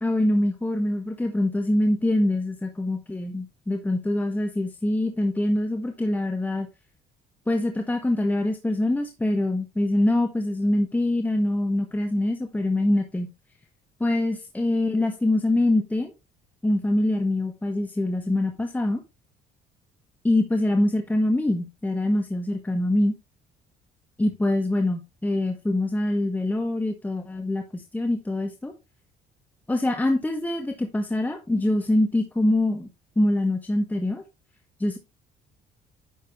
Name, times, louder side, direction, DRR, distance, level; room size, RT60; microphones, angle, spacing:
voice 1, 0.0-6.7 7.5-13.3 14.0-16.1 16.6-19.0 20.2-23.1 24.2-28.7 29.7-32.9 33.2-34.2 34.8-35.0, left 1 dB, 10° left, 4 dB, 1.2 m, -24 dB
10.5 x 6.6 x 3.1 m, 0.25 s
cardioid pair, 110°, 17 cm